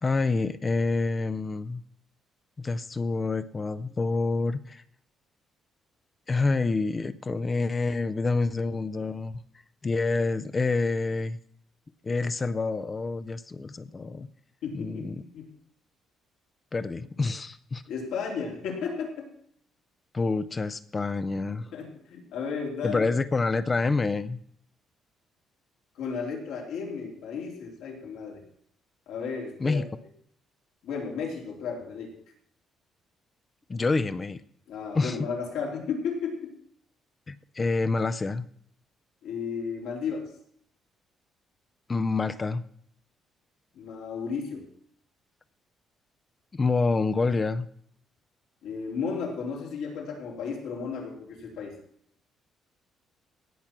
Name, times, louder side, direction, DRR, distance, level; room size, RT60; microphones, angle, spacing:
voice 1, 0.0-1.8 2.6-4.8 6.3-9.4 9.8-11.4 12.0-14.3 14.7-15.2 16.7-17.8 20.1-21.7 22.8-24.4 29.6-29.8 33.7-34.4 34.9-35.2 37.3-38.5 41.9-42.6 46.5-47.7, left 3 dB, 20° left, 13 dB, 0.4 m, -27 dB
voice 2, 14.6-15.5 17.9-19.3 21.7-23.1 25.9-28.4 29.1-29.8 30.8-32.1 34.7-36.5 39.2-40.3 43.7-44.6 48.6-51.8, left 5 dB, 80° left, 0 dB, 3.3 m, -34 dB
17.0 x 6.1 x 5.9 m, 0.64 s
cardioid pair, 160°, 0 cm